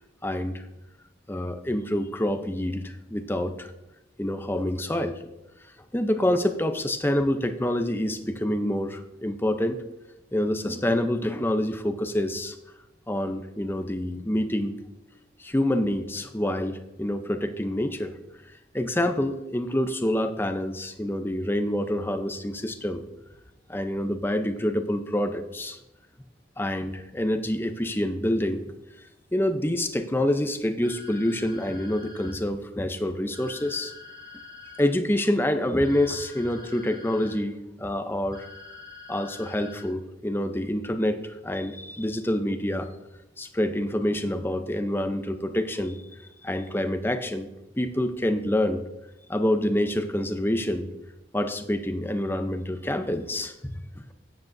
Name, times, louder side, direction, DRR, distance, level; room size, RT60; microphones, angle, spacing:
voice 1, 0.2-0.6 1.3-3.7 4.2-5.2 5.9-9.8 10.3-12.6 13.1-14.7 15.4-18.1 18.7-23.0 23.7-25.8 26.6-28.7 29.3-33.9 34.8-38.5 39.1-42.9 43.4-46.0 46.4-47.5 47.8-48.8 49.3-50.9 51.3-54.1, left 1 dB, 10° left, 8 dB, 0.6 m, -27 dB
sound 1, 30.8-32.3 33.3-34.8 35.8-37.3 38.3-39.8, left 3 dB, 25° right, 3.5 m, -46 dB
13.0 x 9.3 x 2.7 m, 0.95 s
head